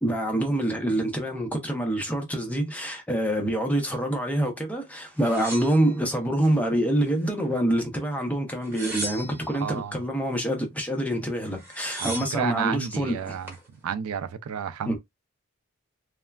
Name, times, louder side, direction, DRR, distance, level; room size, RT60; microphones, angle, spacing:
voice 1, 0.0-13.4 14.9-15.0, right 1 dB, 5° left, 0.6 m, -26 dB
sound 1, 5.2-6.6 7.0-7.8 8.5-9.6 11.2-11.3 11.5-12.5 13.2-13.7, right 1 dB, 10° right, 1.1 m, -37 dB
voice 2, 9.5-10.0 12.0-13.6 13.8-15.0, right 7 dB, 85° right, 0.4 m, -31 dB
3.3 x 2.1 x 2.3 m
head